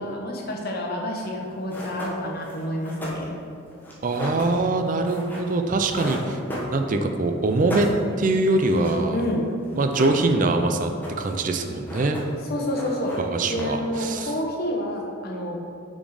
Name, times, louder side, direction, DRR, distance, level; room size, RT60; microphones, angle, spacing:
voice 1, 0.0-3.3 9.1-9.5 12.5-15.6, left 1 dB, 50° left, 0 dB, 1.0 m, -29 dB
sound 1, 1.3-1.4 1.7-7.2 7.5-9.1 9.3-9.4 9.6-10.6 10.8-11.4 11.7-12.5 12.7-13.9, equal, 10° left, 1.2 m, -36 dB
voice 2, 4.0-6.4 6.7-7.9 8.2-9.2 9.8-10.9 11.2-12.2 13.2-14.3, right 2 dB, 40° right, 6 dB, 0.4 m, -23 dB
6.2 x 4.3 x 4.8 m, 2.4 s
head